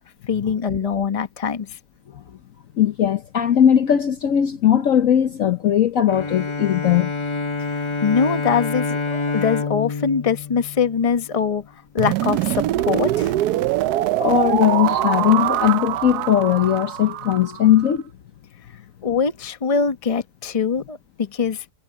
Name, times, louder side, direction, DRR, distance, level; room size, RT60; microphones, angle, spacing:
voice 1, 0.3-1.8 8.0-11.7 11.9-13.3 19.0-21.6, left 6 dB, 25° left, 1.0 m, -23 dB
voice 2, 2.8-7.1 14.2-18.0, left 10 dB, 60° left, 1.1 m, -18 dB
Bowed string instrument, 6.1-11.5, left 4 dB, 45° left, 0.4 m, -27 dB
sound 1, 12.0-17.9, right 14 dB, 75° right, 1.1 m, -23 dB
omnidirectional pair, 1.8 m